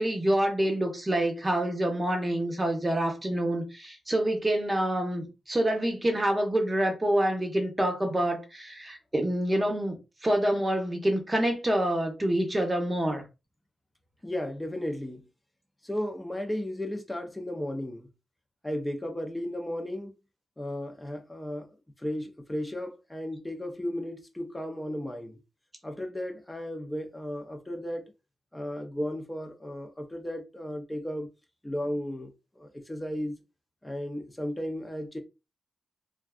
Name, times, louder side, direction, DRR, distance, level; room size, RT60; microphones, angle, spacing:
voice 1, 0.0-13.2, right 1 dB, 20° right, 0.8 m, -27 dB
voice 2, 14.2-15.2 15.8-18.1 18.6-20.1 20.6-21.7 22.0-25.4 25.8-28.1 28.5-31.3 31.6-32.3 32.6-33.3 33.8-35.2, left 1 dB, 10° left, 0.6 m, -34 dB
2.5 x 2.3 x 2.3 m
cardioid pair, 85°, 0 cm